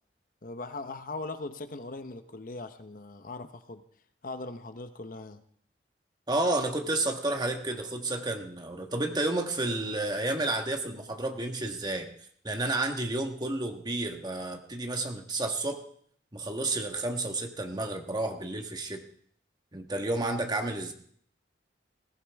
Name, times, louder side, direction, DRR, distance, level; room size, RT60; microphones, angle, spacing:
voice 1, 0.4-3.8 4.2-5.4, left 2 dB, 50° left, 9 dB, 0.9 m, -40 dB
voice 2, 6.3-12.1 12.4-15.8 16.3-19.0 19.7-20.9, right 2 dB, 25° right, 4 dB, 1.5 m, -31 dB
21.0 x 15.0 x 3.5 m, 0.62 s
head